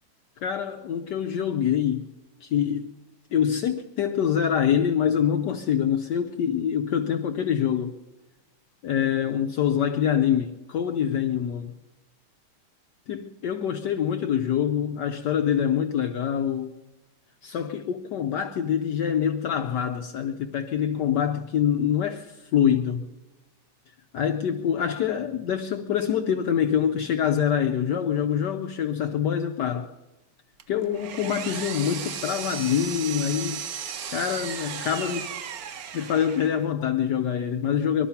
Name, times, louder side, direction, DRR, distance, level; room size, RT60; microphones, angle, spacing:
voice 1, 0.4-2.1 2.4-2.9 3.3-8.0 8.8-11.7 13.1-16.7 17.4-23.1 24.1-29.9 30.7-33.6 34.1-35.3 35.6-38.1, left 8 dB, 70° left, 1.1 m, -25 dB
Power tool, 30.6-36.7, right 8 dB, 60° right, 1.0 m, -35 dB
21.0 x 12.0 x 5.7 m
omnidirectional pair, 2.3 m